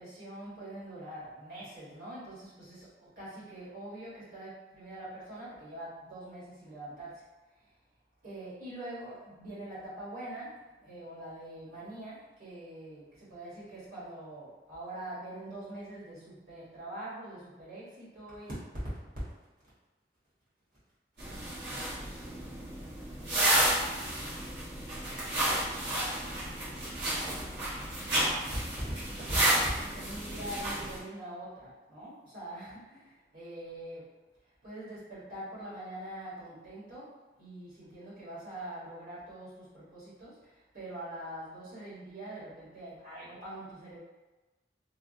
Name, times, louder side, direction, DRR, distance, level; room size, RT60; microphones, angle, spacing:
voice 1, 0.0-7.2 8.2-10.5 10.8-18.5 29.8-34.1 34.6-37.1 37.4-44.0, right 1 dB, 55° right, -10 dB, 1.4 m, -44 dB
sound 1, 21.2-31.0, right 1 dB, 80° right, 1.2 m, -31 dB
3.3 x 2.3 x 2.7 m, 1.2 s
head